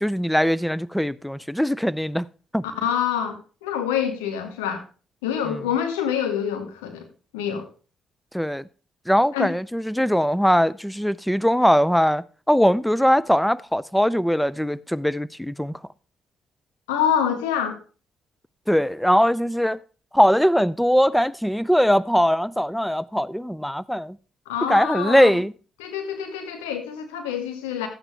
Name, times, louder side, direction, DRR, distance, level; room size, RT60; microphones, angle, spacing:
voice 1, 0.0-2.3 2.5-2.6 8.3-8.6 9.1-15.7 18.7-19.8 20.1-24.2 24.7-25.5, equal, 5° left, 0.5 m, -21 dB
voice 2, 2.7-4.8 5.2-7.1 7.3-7.7 9.3-9.5 16.9-17.8 24.4-25.3 25.8-27.9, left 8 dB, 90° left, 1.7 m, -26 dB
13.0 x 8.9 x 3.3 m
hypercardioid pair, 50°, 0 cm